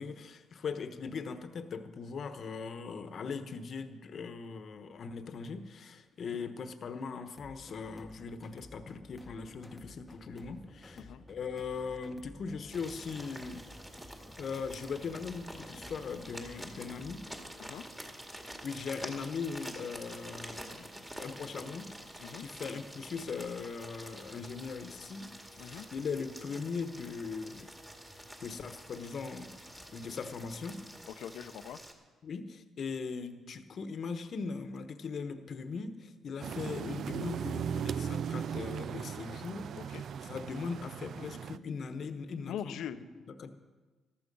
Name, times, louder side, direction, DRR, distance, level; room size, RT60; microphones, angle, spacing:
voice 1, 0.0-13.6 14.4-17.2 18.6-25.3 25.6-27.7 28.4-29.5 29.9-30.8 32.2-42.8 43.4-43.5, left 5 dB, 55° left, 9 dB, 1.1 m, -40 dB
sound 1, 7.3-17.5, left 1 dB, 5° left, 1.0 m, -54 dB
sound 2, 12.7-31.9, right 1 dB, 10° right, 2.1 m, -48 dB
voice 2, 31.1-31.8 39.8-40.0 42.4-43.0, left 9 dB, 80° left, 12 dB, 0.7 m, -42 dB
sound 3, 36.4-41.6, right 8 dB, 60° right, 0.3 m, -37 dB
14.5 x 12.5 x 5.4 m, 1.3 s
cardioid pair, 90°, 0 cm